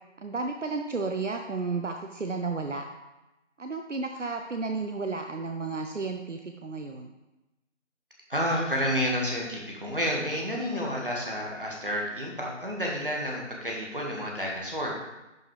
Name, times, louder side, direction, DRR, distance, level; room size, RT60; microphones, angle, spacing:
voice 1, 0.2-2.9 3.6-7.2, right 4 dB, 75° right, 5 dB, 0.7 m, -32 dB
voice 2, 8.3-14.9, equal, 45° right, -2 dB, 1.8 m, -30 dB
10.5 x 5.1 x 3.4 m, 0.99 s
figure-of-eight pair, 180°, 37 cm